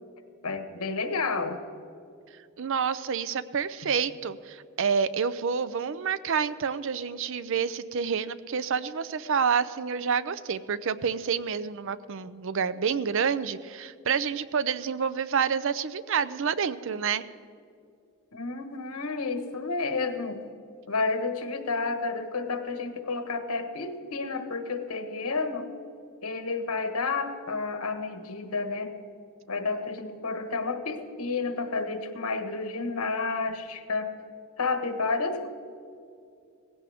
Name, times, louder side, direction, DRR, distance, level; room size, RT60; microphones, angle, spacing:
voice 1, 0.4-1.6 18.3-20.4 20.9-25.7 26.2-28.9 29.5-34.1 34.6-35.5, left 4 dB, 85° left, 7 dB, 1.4 m, -30 dB
voice 2, 2.6-17.2, right 6 dB, 60° right, 15 dB, 0.5 m, -28 dB
18.0 x 16.0 x 3.5 m, 2.4 s
head